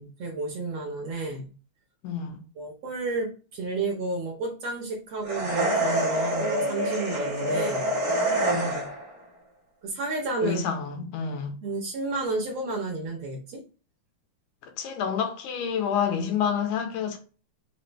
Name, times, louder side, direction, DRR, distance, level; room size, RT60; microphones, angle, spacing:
voice 1, 0.0-1.5 2.6-8.0 9.8-10.6 11.6-13.6, right 3 dB, 70° right, 1.6 m, -31 dB
voice 2, 2.0-2.4 8.5-8.9 10.4-11.6 14.6-17.2, left 7 dB, 85° left, 2.2 m, -29 dB
sound 1, 5.2-9.1, right 1 dB, 45° right, 1.1 m, -26 dB
5.0 x 2.4 x 3.1 m
omnidirectional pair, 3.6 m